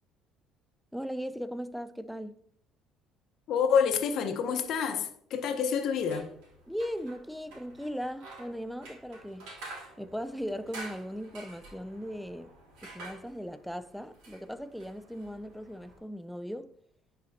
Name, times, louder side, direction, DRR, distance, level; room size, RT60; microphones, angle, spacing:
voice 1, 0.9-2.4 6.7-9.5 10.0-12.5 12.8-16.7, equal, ahead, 0.4 m, -38 dB
voice 2, 3.5-6.3, left 6 dB, 60° left, 0.7 m, -28 dB
sound 1, 5.9-16.0, right 2 dB, 90° right, 2.4 m, -49 dB
10.5 x 4.2 x 2.8 m
cardioid pair, 105°, 0 cm